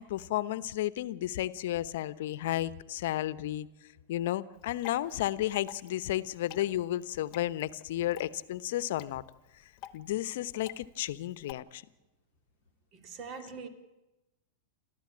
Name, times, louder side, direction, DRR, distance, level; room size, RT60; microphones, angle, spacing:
voice 1, 0.0-3.7 4.1-9.2 9.9-11.8, left 14 dB, 60° left, 0.9 m, -32 dB
Water / Drip, 4.5-11.5, left 13 dB, 45° left, 1.2 m, -51 dB
voice 2, 12.9-13.7, right 5 dB, 40° right, 3.1 m, -43 dB
29.0 x 13.5 x 8.7 m
hypercardioid pair, 100°, 0 cm